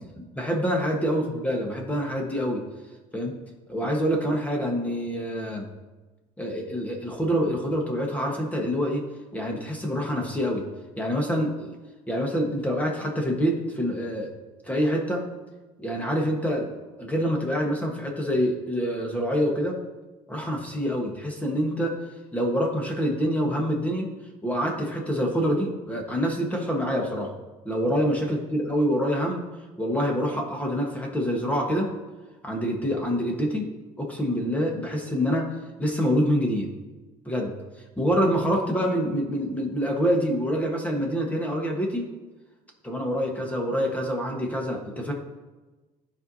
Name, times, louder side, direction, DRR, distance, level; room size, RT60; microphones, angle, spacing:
voice 1, 0.4-2.6 3.1-3.3 3.7-5.7 6.4-9.0 9.3-10.6 11.0-11.7 12.1-14.3 14.6-15.2 15.8-16.7 17.0-19.8 20.3-22.0 22.3-24.1 24.4-27.3 27.6-29.4 29.8-31.9 32.4-33.7 34.0-35.5 35.8-36.7 37.2-37.5 38.0-42.1 42.8-45.1, equal, 10° left, 0 dB, 1.4 m, -26 dB
13.0 x 4.6 x 2.8 m, 1.2 s
cardioid pair, 115°, 15 cm